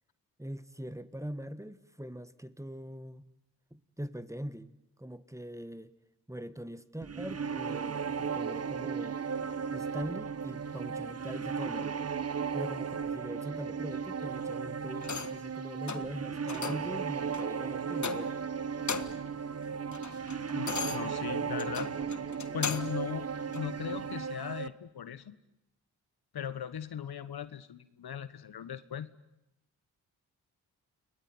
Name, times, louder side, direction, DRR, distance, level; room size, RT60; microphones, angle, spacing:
voice 1, 0.4-3.2 3.7-5.9 6.3-9.2 9.7-12.0 12.5-18.3, equal, 5° right, 13 dB, 1.7 m, -42 dB
sound 1, 7.0-24.7, right 6 dB, 35° right, 1.1 m, -35 dB
sound 2, 15.0-15.5 15.9-16.1 16.5-16.9 17.3-17.5 18.0-18.5 18.7-19.3 19.7-23.0 23.5-23.7, left 6 dB, 45° left, 1.7 m, -38 dB
voice 2, 20.5-21.9 22.5-25.3 26.3-29.1, left 8 dB, 60° left, 14 dB, 1.3 m, -38 dB
29.5 x 20.5 x 9.7 m, 0.91 s
supercardioid pair, 45°, 42 cm